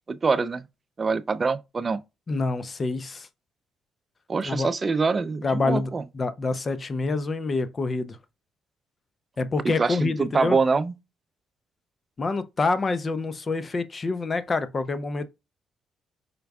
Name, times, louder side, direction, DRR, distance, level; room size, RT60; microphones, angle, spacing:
voice 1, 0.1-0.6 1.0-2.0 4.3-6.0 9.8-10.9, right 4 dB, 35° right, 0.5 m, -24 dB
voice 2, 2.3-3.3 4.4-4.7 5.4-8.2 9.4-10.6 12.2-15.3, left 3 dB, 35° left, 0.5 m, -27 dB
5.1 x 4.5 x 2.3 m
cardioid pair, 90°, 0 cm